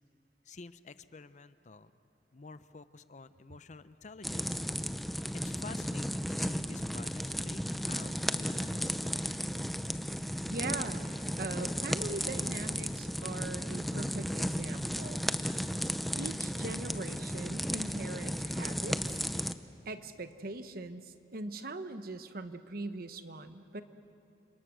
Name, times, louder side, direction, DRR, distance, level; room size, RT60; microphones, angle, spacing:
voice 1, 0.4-1.9 2.3-4.6 5.3-8.9, left 4 dB, 40° left, 13 dB, 0.6 m, -50 dB
sound 1, 4.2-19.5, equal, ahead, 0.6 m, -34 dB
voice 2, 10.4-15.3 16.2-19.3 19.8-23.8, right 2 dB, 55° right, 10 dB, 1.1 m, -41 dB
30.0 x 27.5 x 6.3 m, 2.6 s
head